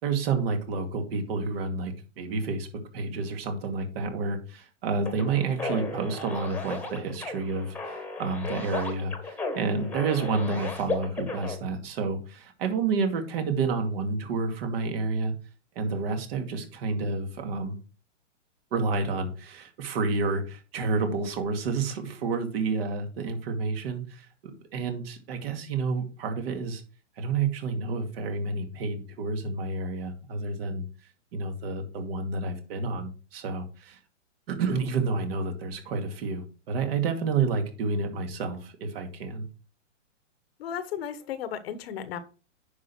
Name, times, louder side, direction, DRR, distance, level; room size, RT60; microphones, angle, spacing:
voice 1, 0.0-2.7 2.9-15.3 15.8-17.8 18.7-24.3 24.7-26.8 27.2-30.8 31.3-34.0 34.5-39.5, right 4 dB, 50° right, 5 dB, 2.4 m, -29 dB
sound 1, 5.1-11.6, left 3 dB, 5° left, 1.5 m, -35 dB
voice 2, 40.6-42.2, left 9 dB, 50° left, 12 dB, 1.2 m, -34 dB
9.7 x 5.6 x 4.5 m, 0.35 s
hypercardioid pair, 140°, 37 cm